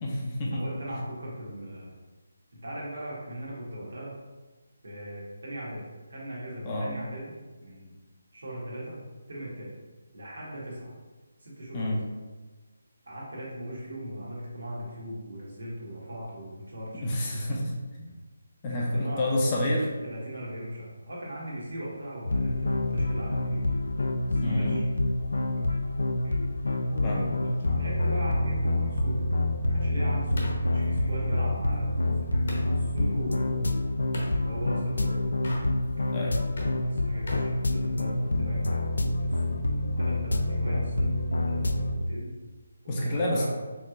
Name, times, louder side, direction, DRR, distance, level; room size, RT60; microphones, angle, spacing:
voice 1, 0.0-0.6 0.9-1.0 6.6-6.9 11.7-12.0 16.9-17.7 18.0-18.1 18.6-19.9 24.4-24.8 27.0-27.2 36.1-36.4 42.9-43.5, left 1 dB, 25° left, -3 dB, 0.6 m, -28 dB
voice 2, 0.5-1.9 2.6-4.2 4.8-5.8 6.1-7.9 8.3-9.7 10.1-10.9 11.4-12.0 13.0-17.5 18.1-18.2 18.7-19.4 20.0-23.7 24.2-24.9 26.2-26.4 26.8-27.2 27.7-29.3 29.6-32.4 32.7-33.7 34.3-35.4 36.7-42.3 43.0-43.5, equal, 75° right, -5 dB, 1.5 m, -39 dB
sound 1, 22.2-42.0, left 1 dB, 80° left, 0.3 m, -27 dB
sound 2, 27.4-32.7 34.1-34.4 35.3-36.1 36.4-38.3, left 1 dB, 60° left, 1.0 m, -41 dB
4.5 x 3.0 x 2.4 m, 1.3 s
figure-of-eight pair, 160°, 0 cm